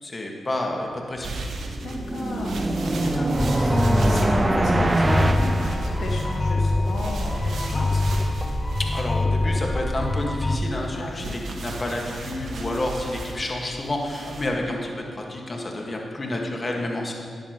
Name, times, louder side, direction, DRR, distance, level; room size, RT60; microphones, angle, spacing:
voice 1, 0.0-1.3 8.8-17.1, left 1 dB, 35° left, 0 dB, 1.6 m, -29 dB
sound 1, 1.2-14.5, right 2 dB, 75° right, 1.1 m, -36 dB
sound 2, 1.5-6.5, right 2 dB, 25° right, 0.6 m, -24 dB
voice 2, 1.8-8.0 10.9-11.3 14.2-14.6, left 2 dB, 65° left, -1 dB, 1.4 m, -34 dB
sound 3, 3.3-10.6, left 2 dB, 20° left, 0.5 m, -24 dB
13.0 x 9.9 x 3.0 m, 2.1 s
cardioid pair, 60°, 0 cm